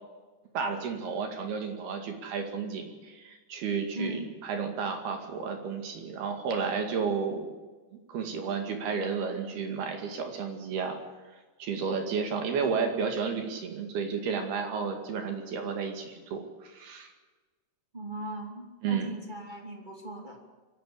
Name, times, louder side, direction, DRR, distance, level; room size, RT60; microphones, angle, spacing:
voice 1, 0.5-7.5 8.1-11.0 11.6-17.1 18.8-19.1, right 5 dB, 55° right, 4 dB, 3.7 m, -32 dB
voice 2, 3.9-4.2 17.9-20.4, right 1 dB, 30° right, 2 dB, 0.8 m, -38 dB
25.5 x 12.0 x 8.6 m, 1.3 s
omnidirectional pair, 5.9 m